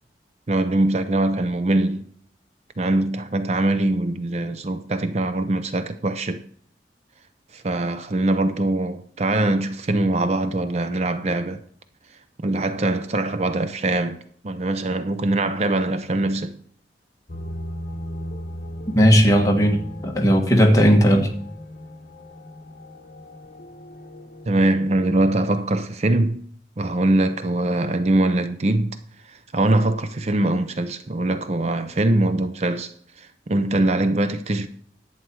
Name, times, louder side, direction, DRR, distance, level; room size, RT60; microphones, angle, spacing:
voice 1, 0.5-2.0 2.8-6.4 7.5-11.6 12.4-16.6 24.5-26.4 26.8-29.0 29.3-32.9 33.2-34.7, right 2 dB, 40° right, 0.5 m, -22 dB
sound 1, 17.3-25.2, equal, 50° left, 1.3 m, -37 dB
voice 2, 18.9-21.3, equal, 20° left, 1.6 m, -16 dB
11.5 x 8.3 x 4.6 m
head